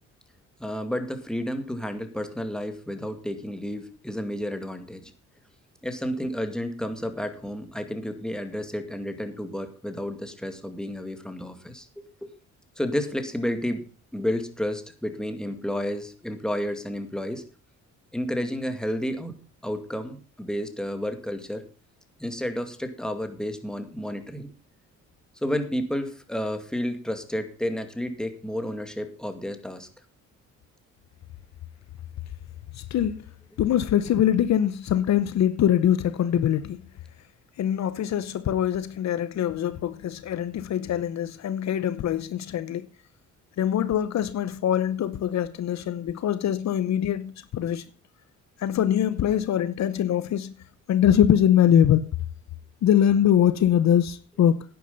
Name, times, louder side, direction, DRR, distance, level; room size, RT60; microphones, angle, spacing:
voice 1, 0.6-5.1 5.8-12.0 12.8-13.8 14.1-17.4 18.1-19.3 19.6-21.6 22.2-24.5 25.4-29.9, equal, ahead, 2.1 m, -31 dB
voice 2, 32.7-33.2 33.6-36.8 37.6-42.9 43.6-47.8 48.6-50.5 50.9-52.1 52.8-54.6, left 10 dB, 65° left, 0.8 m, -23 dB
11.0 x 9.6 x 5.4 m
cardioid pair, 90°, 30 cm